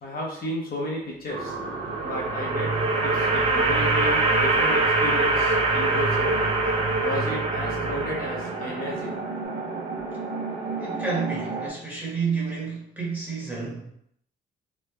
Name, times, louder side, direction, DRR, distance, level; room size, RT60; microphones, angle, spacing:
voice 1, 0.0-1.6 2.0-2.8 3.0-6.4 7.0-9.2, left 1 dB, 50° left, -3 dB, 0.7 m, -33 dB
sound 1, 1.3-11.7, right 4 dB, 65° right, 0.7 m, -32 dB
sound 2, 1.8-8.9, right 2 dB, 30° right, 0.5 m, -24 dB
voice 2, 10.8-13.9, right 5 dB, 10° right, -5 dB, 1.0 m, -30 dB
3.1 x 2.0 x 2.2 m, 0.70 s
cardioid pair, 90°, 20 cm